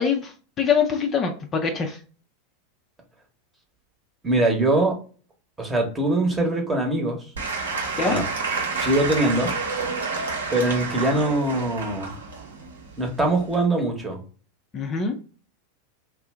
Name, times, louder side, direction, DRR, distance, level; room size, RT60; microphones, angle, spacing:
voice 1, 0.0-2.0 8.0-8.2 14.7-15.1, left 6 dB, 30° left, 3 dB, 0.5 m, -24 dB
voice 2, 4.2-5.0 5.6-7.2 8.0-8.3 8.7-9.5 10.5-12.1 13.0-14.2, right 2 dB, 15° right, 1 dB, 1.0 m, -22 dB
Applause / Crowd, 7.3-13.6, right 4 dB, 80° right, 0.8 m, -29 dB
2.7 x 2.1 x 3.4 m, 0.38 s
hypercardioid pair, 90°, 0 cm